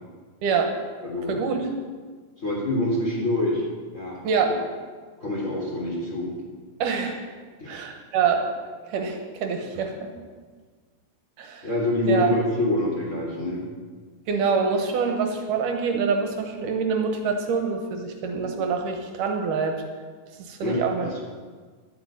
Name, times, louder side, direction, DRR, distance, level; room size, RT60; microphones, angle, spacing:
voice 1, 0.4-0.7 1.3-1.7 4.2-4.6 6.8-7.3 7.7-8.5 8.9-10.1 11.4-11.7 12.1-12.3 14.3-19.8 20.4-21.2, right 5 dB, 80° right, 4 dB, 2.8 m, -25 dB
voice 2, 1.0-1.4 2.4-3.6 3.9-4.5 5.2-6.3 7.6-7.7 11.6-13.6 20.6-21.2, left 1 dB, 20° left, -4 dB, 3.7 m, -26 dB
12.0 x 8.3 x 8.8 m, 1.5 s
omnidirectional pair, 3.8 m